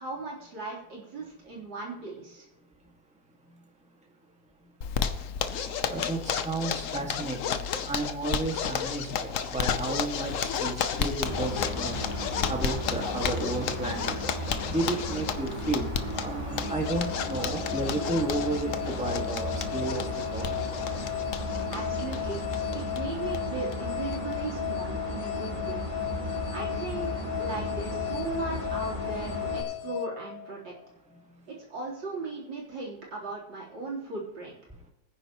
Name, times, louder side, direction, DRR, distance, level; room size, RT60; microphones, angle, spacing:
voice 1, 0.0-2.5 21.7-22.4 22.7-25.8 26.5-30.7 31.5-34.6, right 3 dB, 85° right, 4.3 m, -37 dB
Zipper (clothing), 4.8-23.0 23.3-23.4 23.7-23.8 24.1-24.6, left 7 dB, 60° left, 0.9 m, -33 dB
voice 2, 5.8-12.0 12.4-14.2 14.7-20.5 31.1-31.4, right 2 dB, 5° right, 1.7 m, -33 dB
sound 1, 11.2-29.6, equal, 20° right, 2.2 m, -35 dB
sound 2, 16.5-30.9, left 15 dB, 75° left, 1.2 m, -36 dB
21.5 x 9.8 x 3.0 m
omnidirectional pair, 2.0 m